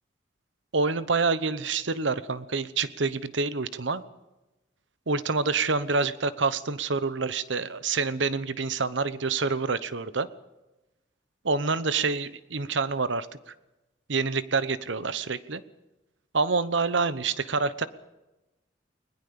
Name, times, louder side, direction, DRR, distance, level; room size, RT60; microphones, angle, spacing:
voice 1, 0.7-4.0 5.1-10.3 11.4-13.3 14.1-15.6 16.3-17.9, right 4 dB, 75° right, 15 dB, 1.0 m, -27 dB
20.5 x 20.0 x 7.0 m, 1.0 s
head